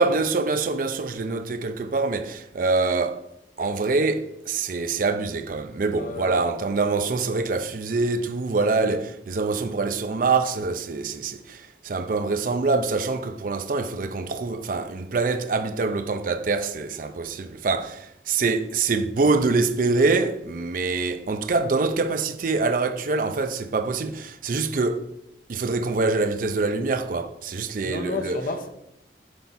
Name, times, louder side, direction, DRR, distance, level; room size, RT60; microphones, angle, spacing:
voice 1, 0.0-3.2 3.6-25.1 25.5-28.4, right 3 dB, 50° right, 0.5 m, -25 dB
voice 2, 5.9-6.4 8.7-9.0 27.8-28.7, left 2 dB, 50° left, 0.8 m, -32 dB
7.9 x 4.7 x 4.1 m
head